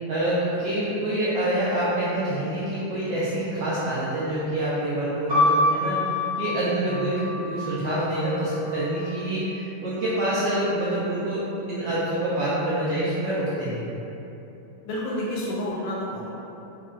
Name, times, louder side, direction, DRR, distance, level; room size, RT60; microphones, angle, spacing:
voice 1, 0.1-6.0 6.4-13.8, right 1 dB, 75° right, -9 dB, 1.2 m, -26 dB
sound 1, 5.3-9.1 10.0-10.7, left 2 dB, 40° right, 0.6 m, -27 dB
voice 2, 14.8-16.3, left 1 dB, 75° left, -5 dB, 1.1 m, -30 dB
5.4 x 2.4 x 2.3 m, 3.0 s
omnidirectional pair, 2.4 m